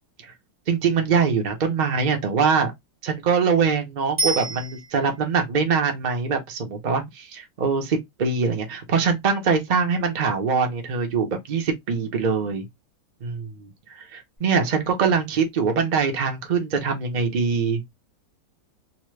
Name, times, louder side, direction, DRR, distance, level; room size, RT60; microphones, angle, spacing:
voice 1, 0.7-2.7 3.0-12.6 13.2-17.8, right 5 dB, 70° right, 0.4 m, -23 dB
Bicycle bell, 4.2-5.3 14.4-14.5, right 2 dB, 15° right, 1.1 m, -28 dB
2.9 x 2.1 x 3.1 m
omnidirectional pair, 1.9 m